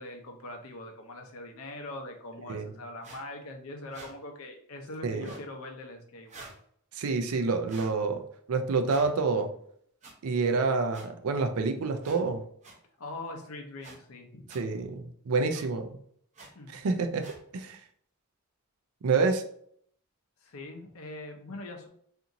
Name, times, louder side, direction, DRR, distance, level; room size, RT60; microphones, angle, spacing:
voice 1, 0.0-6.4 13.0-14.5 16.5-17.1 20.4-21.9, left 2 dB, 70° left, 3 dB, 0.6 m, -42 dB
sound 1, 3.0-3.2 3.9-4.1 5.1-5.5 6.3-6.6 7.7-7.9 8.8-9.1 10.0-10.1 10.9-11.0 12.0-12.2 12.6-12.7 13.8-14.0 14.5-14.6 15.5-15.6 16.3-16.5 17.2-17.4, right 3 dB, 30° right, 0.6 m, -47 dB
voice 2, 6.9-8.2 8.5-9.5 10.2-12.4 14.5-15.9 16.7-17.3 17.5-17.8 19.0-19.4, right 4 dB, 75° right, 6 dB, 0.4 m, -28 dB
2.8 x 2.5 x 2.5 m, 0.63 s
head